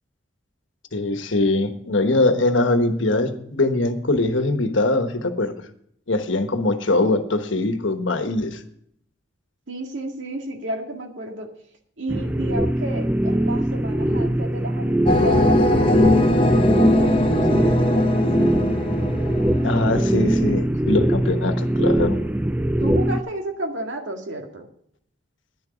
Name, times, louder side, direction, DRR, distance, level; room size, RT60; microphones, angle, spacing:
voice 1, 0.9-5.5 6.1-8.6 19.6-22.2, left 2 dB, 85° left, 8 dB, 1.3 m, -22 dB
voice 2, 9.7-11.5 12.0-18.2 22.8-24.7, right 1 dB, 80° right, 3 dB, 2.0 m, -32 dB
sound 1, 12.1-23.2, right 1 dB, 10° right, 0.4 m, -22 dB
sound 2, 15.1-20.6, left 1 dB, 25° left, 1.1 m, -20 dB
11.0 x 10.5 x 5.0 m, 0.69 s
head